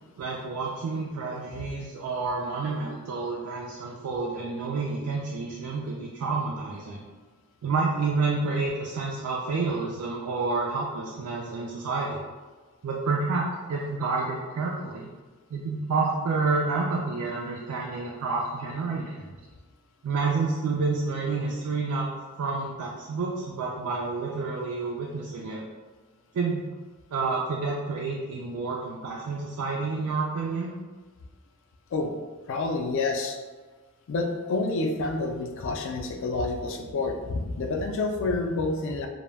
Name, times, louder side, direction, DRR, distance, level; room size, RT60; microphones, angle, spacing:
voice 1, 0.2-7.0 7.6-12.2 12.8-15.1 15.5-19.4 20.0-22.1 22.4-25.6 26.3-26.7 27.1-30.7, right 4 dB, 80° right, -2 dB, 0.3 m, -29 dB
voice 2, 32.5-33.4 34.1-39.1, left 3 dB, 55° left, 4 dB, 0.3 m, -28 dB
2.1 x 2.0 x 3.3 m, 1.3 s
head